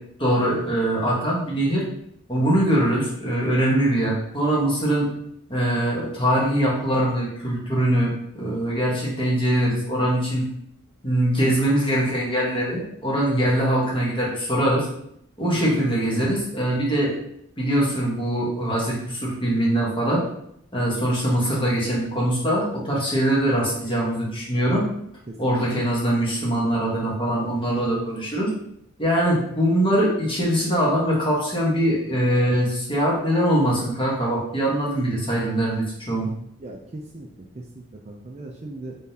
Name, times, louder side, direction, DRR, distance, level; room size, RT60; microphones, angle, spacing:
voice 1, 0.2-1.8 2.3-5.1 5.5-10.5 11.0-14.9 15.4-17.2 17.6-20.2 20.7-24.8 25.4-28.5 29.0-36.3, right 1 dB, 25° left, -5 dB, 1.1 m, -22 dB
voice 2, 36.6-39.0, right 2 dB, 30° right, 0 dB, 0.3 m, -39 dB
3.7 x 3.5 x 2.7 m, 0.73 s
head